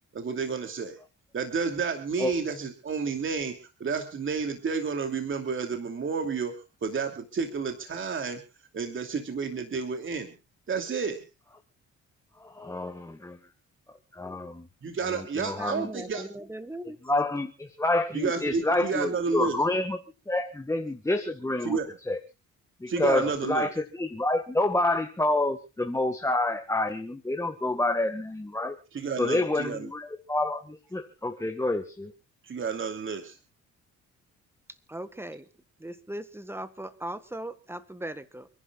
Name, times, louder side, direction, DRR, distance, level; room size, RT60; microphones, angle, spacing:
voice 1, 0.1-1.0 1.3-6.5 6.8-8.4 8.7-10.3 10.7-11.2 14.8-16.3 18.1-19.6 21.6-21.9 22.9-23.7 28.9-29.9 32.4-33.4, right 5 dB, 40° right, 5 dB, 2.8 m, -30 dB
voice 2, 12.4-13.4 14.1-14.7 15.0-15.9 17.0-20.0 20.3-21.8 22.1-22.2 22.8-28.8 29.2-32.1, left 2 dB, 10° left, 6 dB, 1.6 m, -28 dB
voice 3, 15.6-17.0 34.9-35.4 35.8-38.5, right 1 dB, 10° right, 12 dB, 1.7 m, -38 dB
29.0 x 11.5 x 2.4 m, 0.32 s
cardioid pair, 90°, 30 cm